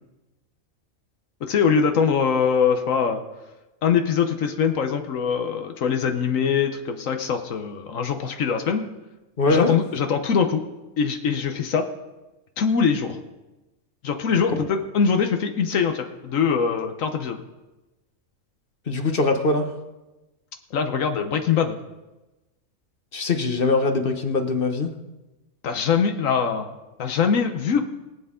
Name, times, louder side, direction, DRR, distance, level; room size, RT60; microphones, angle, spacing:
voice 1, 1.4-3.2 3.8-8.9 9.5-10.6 11.0-11.9 12.6-13.2 14.0-17.4 20.7-21.8 25.6-27.8, left 6 dB, 75° left, 6 dB, 1.3 m, -23 dB
voice 2, 9.4-9.7 18.9-19.7 23.1-24.9, left 3 dB, 45° left, 6 dB, 1.2 m, -22 dB
22.5 x 8.1 x 3.7 m, 1.1 s
omnidirectional pair, 1.4 m